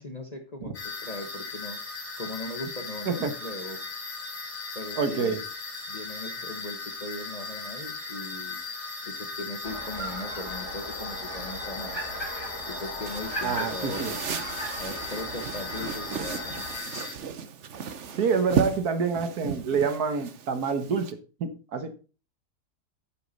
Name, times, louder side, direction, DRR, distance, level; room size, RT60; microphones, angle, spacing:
voice 1, 0.0-1.8 2.2-3.8 4.7-5.4 5.9-8.6 9.1-12.0 12.7-14.2 14.8-16.7, left 2 dB, 30° left, 5 dB, 1.0 m, -39 dB
sound 1, 0.7-17.1, left 4 dB, 55° left, 3.9 m, -38 dB
voice 2, 5.0-5.4 13.4-14.1 18.2-21.1 21.4-21.9, right 5 dB, 70° right, 9 dB, 1.6 m, -27 dB
sound 2, 9.6-16.8, equal, 15° right, 3.0 m, -38 dB
sound 3, 13.1-21.1, right 7 dB, 55° right, 1.1 m, -35 dB
9.4 x 8.3 x 4.0 m, 0.35 s
omnidirectional pair, 1.7 m